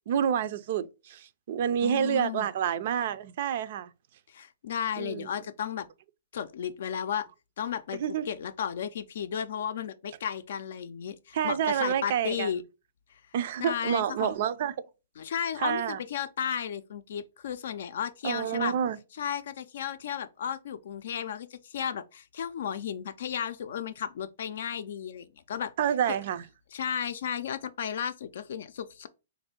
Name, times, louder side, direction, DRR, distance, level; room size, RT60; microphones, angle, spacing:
voice 1, 0.1-3.9 5.0-5.3 8.0-8.2 11.3-12.5 13.3-14.7 15.6-16.0 18.2-19.0 25.8-26.4, right 9 dB, 55° right, 0.4 m, -28 dB
voice 2, 1.8-2.5 4.3-5.9 6.3-7.3 7.6-12.6 13.6-14.3 15.2-18.8 19.2-25.7 26.1-26.2 26.7-29.1, left 8 dB, 70° left, 0.4 m, -34 dB
3.2 x 2.6 x 4.3 m
hypercardioid pair, 140°, 0 cm